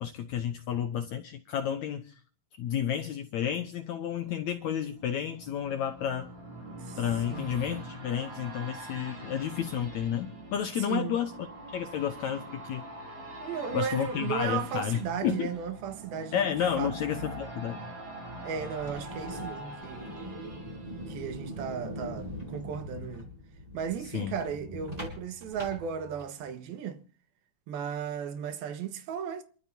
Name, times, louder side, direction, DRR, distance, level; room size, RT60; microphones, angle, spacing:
voice 1, 0.0-2.1 2.6-6.3 7.0-11.3 11.7-12.8 13.7-15.5 16.3-17.8 24.1-24.4, left 9 dB, 80° left, 1.7 m, -31 dB
sound 1, 4.1-21.9 22.3-22.4, right 1 dB, 45° right, 5.5 m, -44 dB
voice 2, 10.8-11.2 13.4-17.2 18.4-20.1 21.1-23.3 23.7-27.0 27.7-29.4, right 7 dB, 80° right, 3.2 m, -35 dB
sound 2, 18.8-26.5, equal, 10° right, 3.9 m, -42 dB
27.5 x 13.0 x 2.8 m
omnidirectional pair, 4.4 m